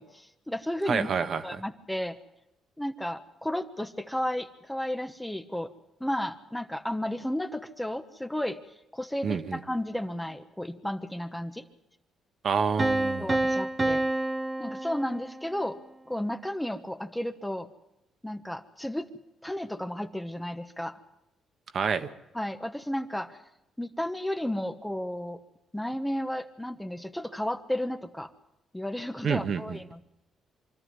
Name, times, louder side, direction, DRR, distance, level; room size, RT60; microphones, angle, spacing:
voice 1, 0.0-1.1 1.4-2.2 2.8-5.7 6.0-8.6 8.9-11.6 13.2-14.0 14.6-15.8 16.1-17.7 18.2-19.1 19.4-21.0 22.3-23.4 23.8-25.4 25.7-28.3 28.7-30.0, left 1 dB, 5° left, 8 dB, 1.1 m, -33 dB
voice 2, 0.9-1.6 9.2-9.6 12.4-13.3 21.7-22.1 29.2-29.8, right 6 dB, 55° right, 10 dB, 1.2 m, -28 dB
Piano, 12.8-15.7, right 2 dB, 25° right, 1.1 m, -28 dB
25.0 x 12.5 x 9.5 m, 0.88 s
cardioid pair, 90°, 0 cm